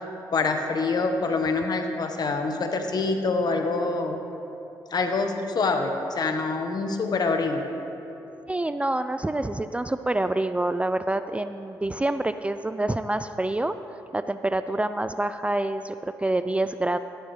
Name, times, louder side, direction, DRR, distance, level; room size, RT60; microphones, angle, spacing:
voice 1, 0.3-4.2 4.9-7.6, left 3 dB, 55° left, 5 dB, 1.2 m, -25 dB
voice 2, 8.5-13.8 14.1-17.0, right 2 dB, 15° right, 11 dB, 0.3 m, -27 dB
13.0 x 11.5 x 3.2 m, 2.9 s
supercardioid pair, 60°, 8 cm